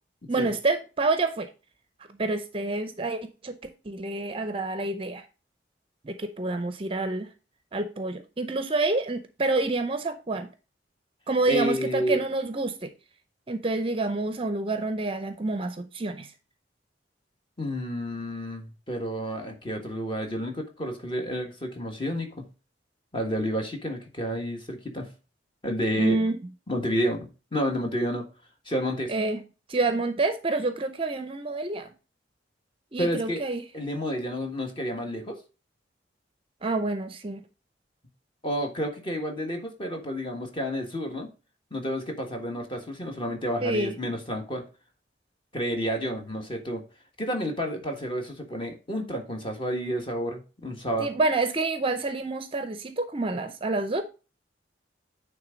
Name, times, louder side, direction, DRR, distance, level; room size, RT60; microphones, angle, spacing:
voice 1, 0.3-1.5 2.2-3.5 3.8-5.2 6.0-7.3 7.7-10.5 11.3-12.9 13.5-16.3 26.0-26.4 29.1-29.4 29.7-31.9 32.9-33.6 36.6-37.4 43.6-43.9 51.0-54.0, right 2 dB, 30° right, 0.6 m, -28 dB
voice 2, 11.5-12.2 17.6-22.4 23.1-25.1 25.6-26.2 26.7-28.2 28.6-29.1 33.0-33.5 33.7-35.4 38.4-41.3 41.7-44.6 45.5-46.8 47.2-51.1, equal, 25° left, 1.5 m, -30 dB
9.3 x 3.5 x 5.0 m
head